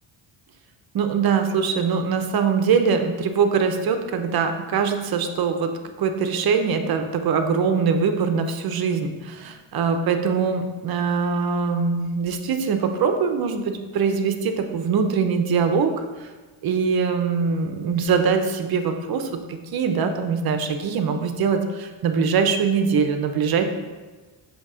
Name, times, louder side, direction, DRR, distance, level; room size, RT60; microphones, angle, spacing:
voice 1, 0.9-16.3 16.6-23.6, right 5 dB, 50° right, 6 dB, 0.7 m, -23 dB
8.1 x 3.0 x 4.9 m, 1.3 s
cardioid pair, 115°, 46 cm